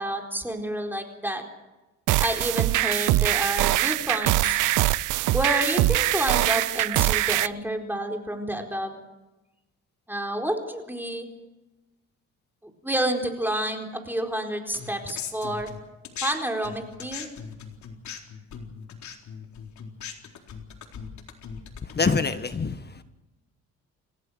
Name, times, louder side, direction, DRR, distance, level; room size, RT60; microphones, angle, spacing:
voice 1, 0.0-1.4 2.2-4.6 5.3-9.0 10.1-11.3 12.6-15.7 16.2-17.3, right 1 dB, 5° right, 4.3 m, -29 dB
sound 1, 2.1-7.5, right 17 dB, 85° right, 0.7 m, -23 dB
sound 2, 14.7-16.3 16.6-22.4, left 7 dB, 70° left, 4.1 m, -39 dB
voice 2, 21.8-23.0, left 4 dB, 35° left, 1.5 m, -26 dB
29.5 x 16.0 x 6.4 m
cardioid pair, 90°, 30 cm